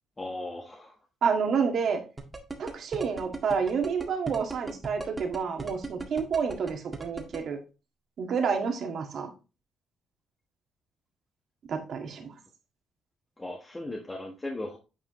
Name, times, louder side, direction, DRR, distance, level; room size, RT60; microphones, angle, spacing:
voice 1, 0.2-0.9 13.4-14.8, left 2 dB, 20° left, 0 dB, 1.4 m, -37 dB
voice 2, 1.2-2.0 2.6-7.6 8.2-9.3 11.7-12.3, right 6 dB, 60° right, 3 dB, 1.9 m, -29 dB
sound 1, 2.2-7.4, right 3 dB, 20° right, 1.8 m, -37 dB
9.3 x 4.9 x 3.1 m, 0.31 s
cardioid pair, 90°, 0 cm